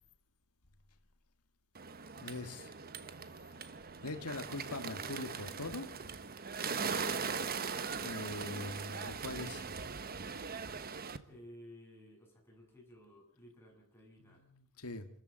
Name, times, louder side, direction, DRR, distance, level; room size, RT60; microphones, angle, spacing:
Bird, 1.7-11.2, right 5 dB, 45° right, 1.3 m, -40 dB
voice 1, 2.2-2.7 4.0-5.9 8.0-9.7 14.5-15.1, left 2 dB, 90° left, 8 dB, 1.9 m, -42 dB
voice 2, 11.3-14.4, equal, 10° left, -1 dB, 7.9 m, -56 dB
27.0 x 14.0 x 8.9 m, 0.64 s
head